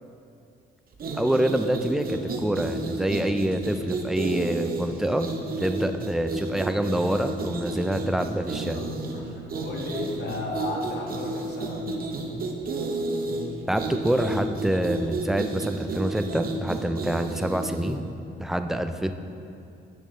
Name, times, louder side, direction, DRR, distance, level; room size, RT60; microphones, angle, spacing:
sound 1, 0.9-18.0, right 2 dB, 50° right, 0.8 m, -32 dB
voice 1, 1.1-8.8 13.7-18.1 18.4-19.1, right 1 dB, ahead, 7 dB, 0.3 m, -26 dB
voice 2, 9.1-11.8, left 2 dB, 60° left, -1 dB, 1.3 m, -34 dB
8.6 x 6.2 x 3.2 m, 2.6 s
cardioid pair, 90°, 20 cm